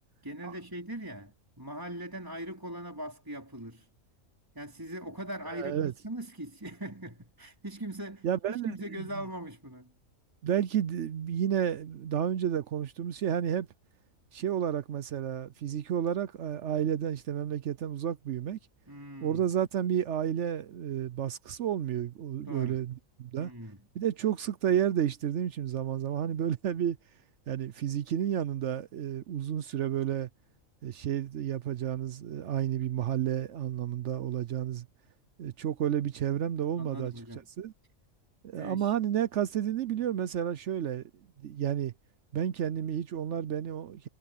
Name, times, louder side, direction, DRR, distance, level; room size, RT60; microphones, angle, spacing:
voice 1, 0.2-3.9 4.5-9.9 18.9-19.4 22.5-22.8 23.4-23.8 36.8-37.5 38.5-38.9, right 1 dB, 15° right, 3.9 m, -41 dB
voice 2, 5.5-5.9 8.2-9.1 10.4-13.7 14.3-18.6 19.2-23.5 23.9-27.0 27.5-30.3 30.8-34.9 35.4-37.1 37.6-37.7 38.4-41.0 41.4-41.9 42.3-44.1, right 9 dB, 65° right, 0.9 m, -31 dB
omnidirectional pair, 1.4 m